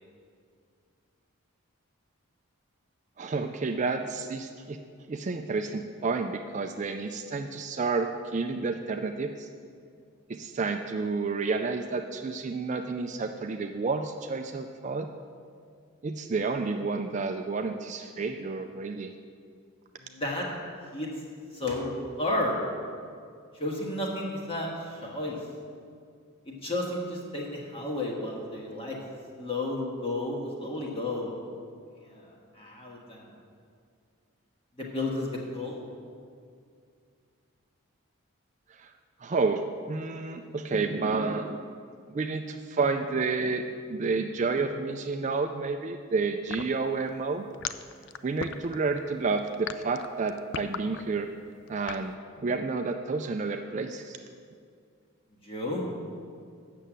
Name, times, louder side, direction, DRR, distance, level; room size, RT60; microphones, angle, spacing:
voice 1, 3.2-4.8 5.1-9.5 10.3-15.1 16.0-19.1 38.7-38.9 39.2-41.6 42.1-47.5 48.2-51.3 51.7-52.1 52.4-54.2, right 4 dB, 35° right, 6 dB, 0.3 m, -30 dB
voice 2, 20.0-20.5 20.9-21.1 21.5-21.9 22.2-22.6 23.5-25.4 26.4-29.0 29.4-31.4 32.0-33.3 34.8-35.8 55.4-55.8, left 2 dB, 25° left, -2 dB, 1.5 m, -32 dB
sound 1, 46.5-52.1, left 8 dB, 55° left, 0.3 m, -37 dB
8.4 x 6.6 x 7.4 m, 2.2 s
head